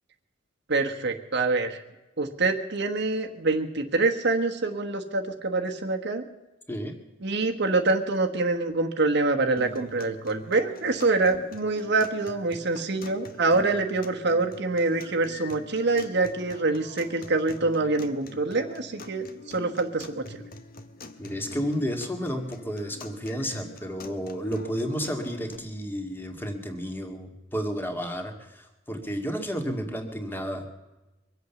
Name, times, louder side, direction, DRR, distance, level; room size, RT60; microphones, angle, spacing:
voice 1, 0.7-1.8 2.2-6.2 7.2-20.4, right 3 dB, 60° right, 4 dB, 1.3 m, -25 dB
sound 1, 9.6-25.6, left 2 dB, 50° left, 1.2 m, -45 dB
voice 2, 21.2-30.7, equal, 10° left, 5 dB, 2.0 m, -32 dB
23.5 x 8.2 x 7.0 m, 1.0 s
head